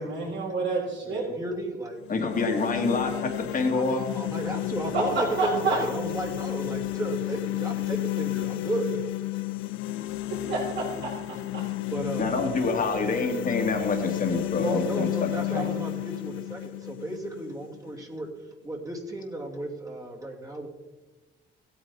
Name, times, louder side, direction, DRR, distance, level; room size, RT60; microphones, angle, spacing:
voice 1, 0.0-1.3 4.9-5.8 10.5-11.6 15.5-15.8, right 3 dB, 65° right, -8 dB, 4.5 m, -29 dB
voice 2, 1.0-2.0 3.7-9.0 11.9-12.4 14.5-18.3 18.6-20.7, right 2 dB, 15° right, -1 dB, 2.6 m, -33 dB
sound 1, 2.0-18.0, left 17 dB, 85° left, 0.5 m, -32 dB
voice 3, 2.1-4.0 12.2-15.7, left 3 dB, 45° left, 3 dB, 2.3 m, -27 dB
16.0 x 9.2 x 4.1 m, 1.2 s
cardioid pair, 90°, 20 cm